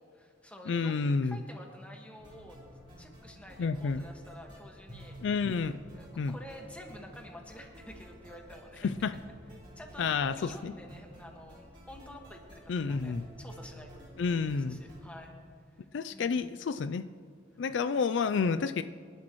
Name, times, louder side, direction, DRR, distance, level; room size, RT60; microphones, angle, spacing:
voice 1, 0.0-2.6 3.0-5.4 5.9-8.9 9.7-15.3 16.1-16.5 17.9-18.1, equal, 5° left, 1 dB, 1.6 m, -50 dB
voice 2, 0.7-1.4 3.6-4.0 5.2-5.8 6.2-6.3 8.8-9.1 10.0-10.7 12.7-13.3 14.2-14.8 15.9-17.0 17.6-18.8, left 5 dB, 70° left, 12 dB, 0.4 m, -30 dB
sound 1, 2.2-15.1, equal, 30° right, 3.8 m, -51 dB
25.5 x 11.5 x 3.1 m, 2.1 s
head